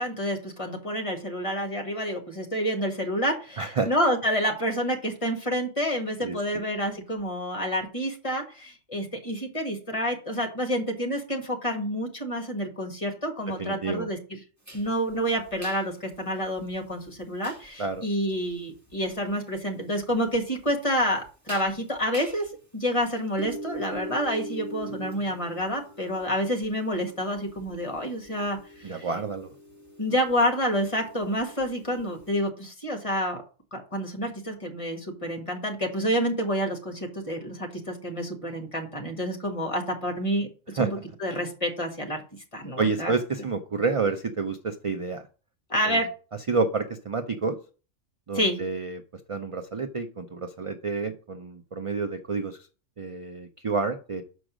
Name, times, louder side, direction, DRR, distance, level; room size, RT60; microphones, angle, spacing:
voice 1, 0.0-14.4 14.7-29.1 30.0-33.4 33.7-40.5 40.7-40.9 41.2-42.2 42.5-43.1 45.7-46.1 48.3-48.6, equal, 25° left, 3 dB, 1.7 m, -28 dB
voice 2, 3.6-3.9 6.2-6.4 13.6-14.1 17.8-18.0 28.8-29.5 40.8-41.0 42.8-45.2 45.8-46.0 46.5-47.6 48.3-49.0 49.3-52.7 53.0-54.2, right 4 dB, 45° right, 6 dB, 0.4 m, -29 dB
sound 1, 14.6-32.3, right 1 dB, 15° right, 1.9 m, -44 dB
6.3 x 5.1 x 6.1 m, 0.37 s
omnidirectional pair, 1.3 m